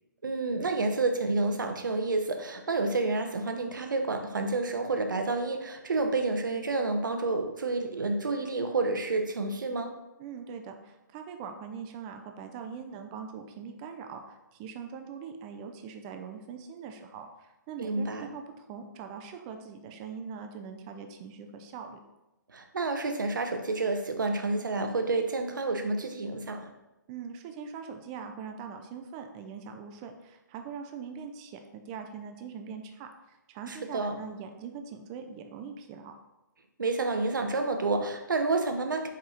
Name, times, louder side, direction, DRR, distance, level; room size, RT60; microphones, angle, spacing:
voice 1, 0.2-10.0 17.8-18.3 22.5-26.7 33.7-34.2 36.8-39.1, right 3 dB, 70° right, 6 dB, 0.7 m, -29 dB
voice 2, 10.2-22.0 27.1-36.1, right 6 dB, 20° right, 6 dB, 0.4 m, -42 dB
4.7 x 4.3 x 2.5 m, 0.96 s
figure-of-eight pair, 135°, 11 cm